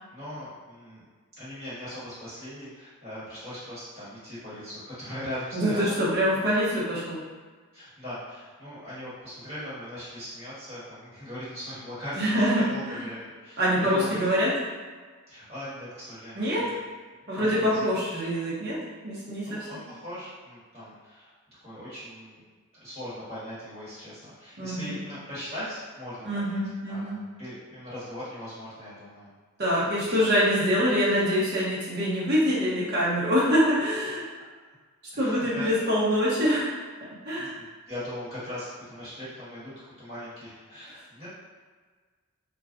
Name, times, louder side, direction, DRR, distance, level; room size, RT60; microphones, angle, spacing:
voice 1, 0.1-1.0 1.4-5.9 7.7-14.3 15.3-16.8 17.3-17.9 19.4-21.3 21.6-22.4 22.8-26.6 26.9-29.3 29.8-30.2 35.1-35.7 37.3-39.7 40.0-41.3, equal, 25° right, -12 dB, 1.4 m, -40 dB
voice 2, 5.5-7.2 12.2-13.0 13.6-14.6 16.3-16.7 17.3-19.7 24.6-24.9 26.2-27.2 29.6-34.2 35.2-36.7 37.2-37.5, equal, 50° right, -8 dB, 0.9 m, -25 dB
2.4 x 2.2 x 3.6 m, 1.5 s
head